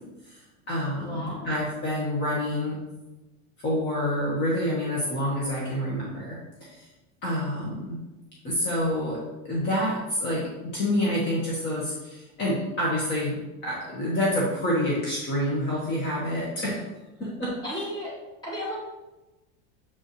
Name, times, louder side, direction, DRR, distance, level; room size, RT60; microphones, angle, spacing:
voice 1, 0.2-2.8 3.6-6.9 7.2-8.0 8.4-16.8 17.2-17.6, left 1 dB, 35° left, -5 dB, 1.6 m, -28 dB
voice 2, 1.0-1.6 17.6-18.1 18.4-18.8, equal, 15° left, -6 dB, 2.4 m, -34 dB
7.7 x 5.4 x 3.2 m, 1.1 s
cardioid pair, 160°, 31 cm